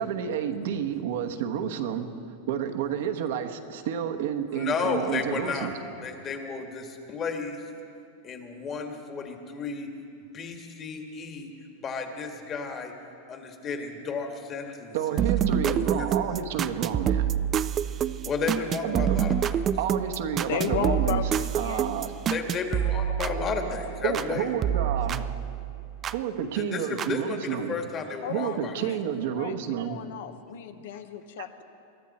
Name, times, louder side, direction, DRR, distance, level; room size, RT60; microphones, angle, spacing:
voice 1, 0.0-2.1 2.5-5.8 14.9-17.3 18.8-19.2 19.8-21.2 21.5-22.1 24.0-25.3 26.1-27.8 28.3-30.0 31.4-31.5, right 9 dB, 70° right, 6 dB, 1.1 m, -30 dB
voice 2, 4.5-5.7 6.0-7.6 8.2-9.9 10.3-11.5 11.8-12.9 13.3-15.2 15.7-16.1 18.2-19.5 22.3-24.5 26.5-28.7, left 5 dB, 30° left, 4 dB, 1.7 m, -33 dB
sound 1, 15.2-24.3 24.6-26.2 27.0-27.1, right 9 dB, 30° right, 0.4 m, -27 dB
voice 3, 20.5-21.9 28.2-31.6, left 9 dB, 75° left, 9 dB, 1.0 m, -34 dB
22.0 x 13.5 x 4.3 m, 2.5 s
supercardioid pair, 135°, 0 cm